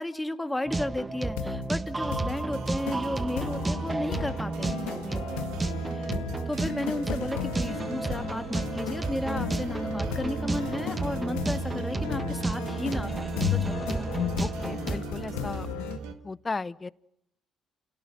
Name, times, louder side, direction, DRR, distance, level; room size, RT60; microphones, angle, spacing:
voice 1, 0.0-5.4 5.9-6.1 6.5-14.0, left 1 dB, 10° left, 9 dB, 1.7 m, -34 dB
sound 1, 0.7-15.0, right 2 dB, 20° right, 1.6 m, -32 dB
sound 2, 1.4-1.7 2.1-2.4 2.9-3.0 3.3-16.0, left 11 dB, 85° left, 1.5 m, -35 dB
sound 3, 2.0-16.1, right 6 dB, 80° right, 1.8 m, -39 dB
voice 2, 14.4-15.7 16.0-16.9, left 3 dB, 30° left, 20 dB, 0.8 m, -35 dB
29.0 x 17.5 x 6.7 m, 0.82 s
hypercardioid pair, 55°, 0 cm